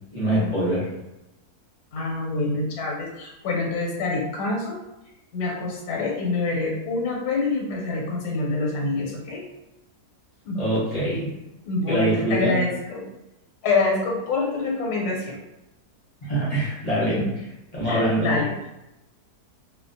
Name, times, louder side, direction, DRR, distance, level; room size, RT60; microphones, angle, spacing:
voice 1, 0.1-0.9 10.5-11.3 11.9-12.6 16.2-17.3 17.7-18.4, right 1 dB, 35° left, -8 dB, 0.7 m, -24 dB
voice 2, 1.9-4.8 5.3-9.5 10.4-10.6 11.6-13.1 13.6-15.4 17.1-17.4 17.8-18.5, left 3 dB, 75° left, -1 dB, 1.2 m, -26 dB
2.7 x 2.0 x 2.6 m, 0.93 s
omnidirectional pair, 1.7 m